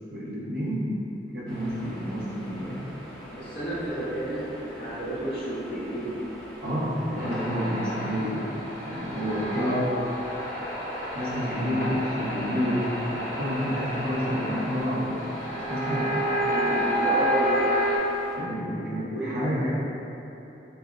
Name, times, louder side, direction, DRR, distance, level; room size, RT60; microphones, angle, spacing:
voice 1, 0.1-1.0 1.3-3.0 6.6-8.5 8.8-9.8 10.5-10.7 11.1-16.1 18.3-19.7, equal, 60° right, -7 dB, 0.7 m, -29 dB
sound 1, 1.5-18.4, equal, 5° left, 0.5 m, -44 dB
voice 2, 3.3-6.3 9.5-10.0 16.3-17.8 18.7-19.7, right 1 dB, 65° left, -12 dB, 1.3 m, -32 dB
sound 2, 7.2-18.0, equal, 40° left, 1.1 m, -30 dB
5.6 x 2.0 x 2.3 m, 3.0 s
head